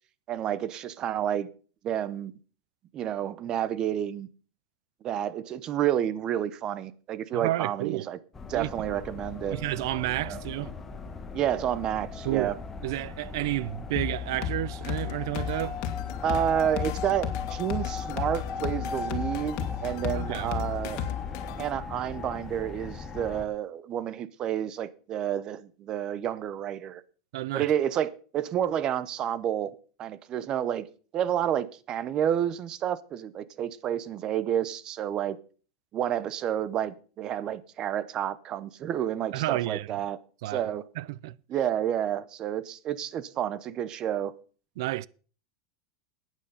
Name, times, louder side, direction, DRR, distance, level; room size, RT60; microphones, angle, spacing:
voice 1, 0.3-1.5 1.8-2.3 2.9-4.3 5.0-8.2 8.5-9.6 10.3-10.4 11.3-12.6 16.2-21.0 21.6-27.0 27.5-30.9 31.1-35.4 35.9-40.2 40.5-40.8 41.5-44.3, right 10 dB, 30° right, 0.7 m, -30 dB
voice 2, 7.3-8.1 8.5-8.9 9.5-10.7 12.2-12.6 12.8-15.8 20.1-20.5 20.9-21.1 27.3-27.7 39.3-39.9 40.4-40.7 41.0-41.4 44.8-45.1, right 16 dB, 70° right, 0.5 m, -31 dB
sound 1, 8.3-23.5, left 4 dB, 15° left, 1.2 m, -38 dB
sound 2, 14.0-21.5, left 10 dB, 40° left, 2.1 m, -34 dB
sound 3, 14.8-21.7, left 16 dB, 60° left, 0.9 m, -45 dB
12.0 x 9.2 x 5.6 m
supercardioid pair, 150°, 2 cm